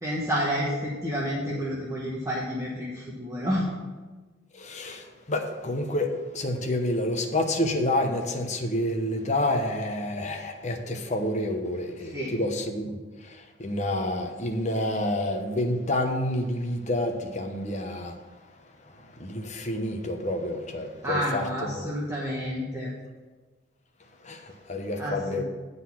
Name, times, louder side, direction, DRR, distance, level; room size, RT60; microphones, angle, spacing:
voice 1, 0.0-3.7 12.0-12.4 21.0-22.9 25.0-25.4, equal, 15° right, 1.0 m, -30 dB
voice 2, 4.5-18.1 19.0-21.9 24.2-25.4, left 1 dB, 35° left, 0.9 m, -29 dB
9.4 x 4.1 x 7.1 m
head